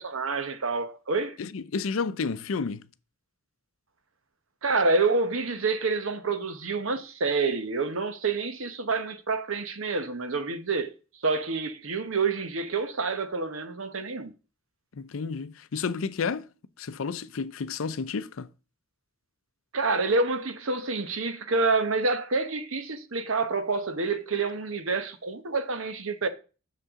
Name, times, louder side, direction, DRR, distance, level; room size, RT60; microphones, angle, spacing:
voice 1, 0.0-1.4 4.6-10.9 11.2-14.3 19.7-26.3, right 3 dB, 70° right, 1.0 m, -28 dB
voice 2, 1.4-2.8 15.0-16.5 16.8-18.5, left 5 dB, 70° left, 0.5 m, -31 dB
8.0 x 6.6 x 3.6 m
head